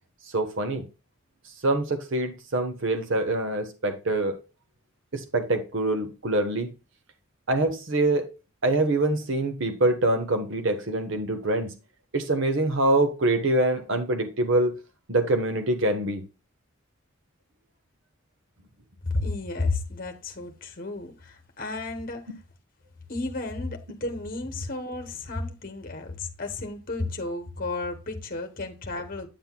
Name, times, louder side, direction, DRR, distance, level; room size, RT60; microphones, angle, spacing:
voice 1, 0.3-0.8 1.6-4.4 5.1-6.7 7.5-8.3 8.6-11.7 12.1-14.7 15.1-16.2, right 2 dB, 60° right, 1.1 m, -25 dB
voice 2, 19.1-22.3 23.1-29.3, left 2 dB, 40° left, 1.0 m, -32 dB
8.8 x 7.8 x 2.2 m
head